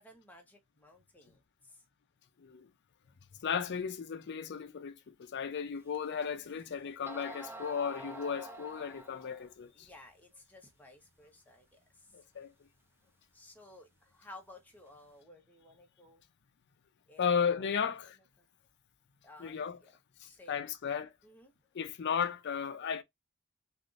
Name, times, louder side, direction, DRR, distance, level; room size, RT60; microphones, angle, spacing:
voice 1, 0.0-1.8 6.3-6.9 9.7-12.3 13.3-16.2 17.1-17.9 18.4-18.5 19.2-19.9 20.2-20.8 21.2-21.5, left 2 dB, 10° left, 0.8 m, -56 dB
voice 2, 3.4-9.9 12.1-12.5 17.2-18.2 19.4-19.8 20.2-21.1 21.7-23.0, left 7 dB, 50° left, 0.4 m, -35 dB
sound 1, 5.9-6.0 6.7-6.8 7.1-9.5, right 1 dB, 10° right, 0.5 m, -47 dB
3.4 x 2.5 x 2.4 m
head